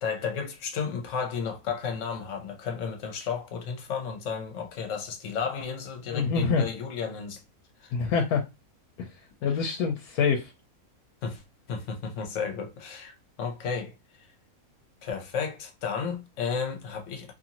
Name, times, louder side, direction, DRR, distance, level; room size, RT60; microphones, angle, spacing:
voice 1, 0.0-7.4 7.8-7.9 9.4-9.5 11.2-11.4 11.7-13.9 15.0-17.3, left 6 dB, 60° left, 1.0 m, -33 dB
voice 2, 6.1-6.7 7.9-8.4 9.0-9.1 9.4-10.5, left 5 dB, 90° left, 1.1 m, -25 dB
2.7 x 2.6 x 2.8 m
omnidirectional pair, 1.6 m